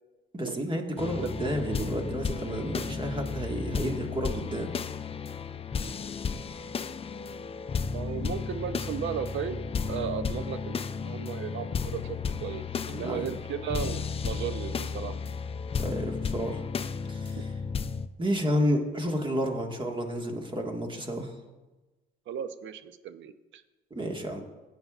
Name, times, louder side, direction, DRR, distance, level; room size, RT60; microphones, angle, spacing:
voice 1, 0.3-4.7 12.9-13.3 15.7-16.6 17.1-17.5 18.2-21.4 23.9-24.4, equal, 25° right, 3 dB, 1.6 m, -31 dB
sound 1, 1.0-18.1, left 5 dB, 30° left, 0.4 m, -33 dB
voice 2, 7.9-9.6 9.9-15.1 17.4-17.5 22.3-23.6, right 8 dB, 70° right, 11 dB, 0.6 m, -35 dB
16.0 x 8.6 x 2.4 m, 1.2 s
cardioid pair, 90°, 20 cm